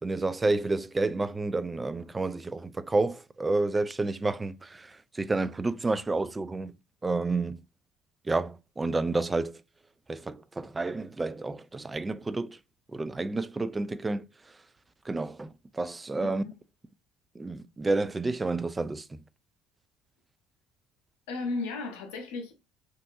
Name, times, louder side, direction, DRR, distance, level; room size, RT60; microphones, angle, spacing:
voice 1, 0.0-6.7 7.0-7.6 8.2-9.6 10.1-12.6 12.9-14.6 15.0-16.4 17.3-19.2, right 3 dB, 20° right, 0.3 m, -30 dB
voice 2, 16.2-16.5 21.3-22.5, left 3 dB, 75° left, 0.9 m, -34 dB
3.5 x 2.6 x 2.6 m
hypercardioid pair, 60°, 0 cm